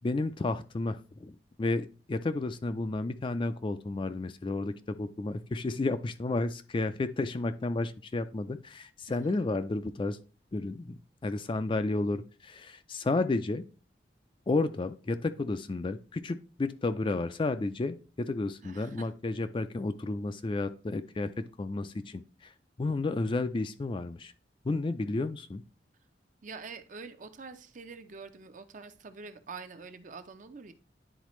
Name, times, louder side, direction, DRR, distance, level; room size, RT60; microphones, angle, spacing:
voice 1, 0.0-10.2 10.5-13.6 14.5-22.5 22.8-24.3 24.6-25.6, left 2 dB, 30° left, 10 dB, 0.4 m, -32 dB
voice 2, 9.1-9.4 18.6-19.1 26.4-30.7, right 4 dB, 45° right, 9 dB, 0.6 m, -46 dB
10.0 x 4.0 x 3.1 m, 0.35 s
head